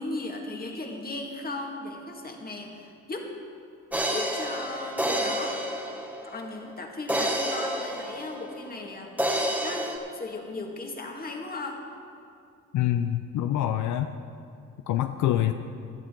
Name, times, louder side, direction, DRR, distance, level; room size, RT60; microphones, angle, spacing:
voice 1, 0.0-3.3 4.1-5.6 6.2-11.8, left 2 dB, 30° left, 1 dB, 2.0 m, -37 dB
sound 1, 3.9-6.5 7.1-8.8 9.2-10.0, equal, 5° right, 1.5 m, -29 dB
voice 2, 12.7-14.1 14.9-15.5, left 12 dB, 75° left, 8 dB, 0.6 m, -25 dB
16.5 x 12.0 x 3.8 m, 2.5 s
cardioid pair, 90°, 30 cm